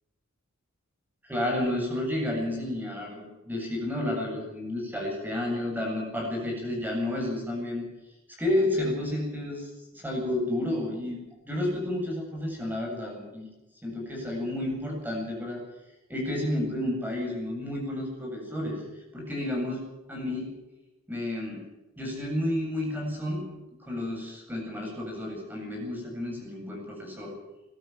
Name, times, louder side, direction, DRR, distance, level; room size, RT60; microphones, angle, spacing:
voice 1, 1.3-7.9 8.4-11.2 11.4-13.5 13.8-15.6 16.1-18.8 19.1-19.8 20.1-20.5 21.1-21.6 22.0-23.5 23.8-27.3, left 1 dB, 10° right, 0 dB, 8.0 m, -31 dB
22.0 x 13.0 x 9.5 m, 0.99 s
head